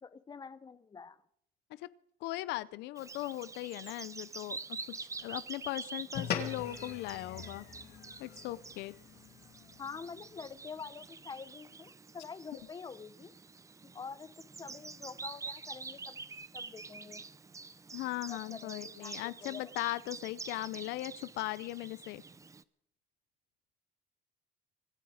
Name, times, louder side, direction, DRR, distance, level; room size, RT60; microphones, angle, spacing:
voice 1, 0.0-1.2 9.8-13.3 13.8-14.3 14.6-16.2 16.5-17.2 18.3-19.7, left 5 dB, 25° left, 15 dB, 0.8 m, -46 dB
voice 2, 2.2-7.7 8.2-9.0 17.9-22.2, left 17 dB, 85° left, 18 dB, 0.6 m, -39 dB
Bird vocalization bird call bird song, 3.0-22.6, right 4 dB, 20° right, 0.6 m, -47 dB
sound 1, 6.1-10.8, left 8 dB, 70° left, 2.5 m, -42 dB
25.0 x 9.6 x 5.0 m, 0.69 s
cardioid pair, 110°, 17 cm